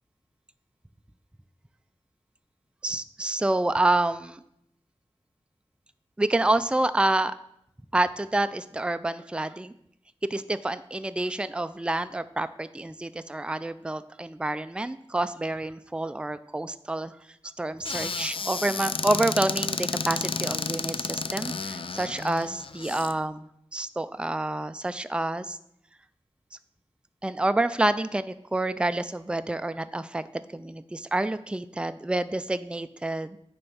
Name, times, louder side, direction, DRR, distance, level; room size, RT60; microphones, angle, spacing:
voice 1, 2.8-4.4 6.2-7.4 7.9-9.7 10.3-17.2 17.6-25.6 27.2-33.4, right 2 dB, 10° right, 12 dB, 0.4 m, -28 dB
Squeak / Cupboard open or close, 17.8-23.1, left 4 dB, 55° left, 0.4 m, -31 dB
8.9 x 3.4 x 5.5 m, 0.76 s
cardioid pair, 45°, 11 cm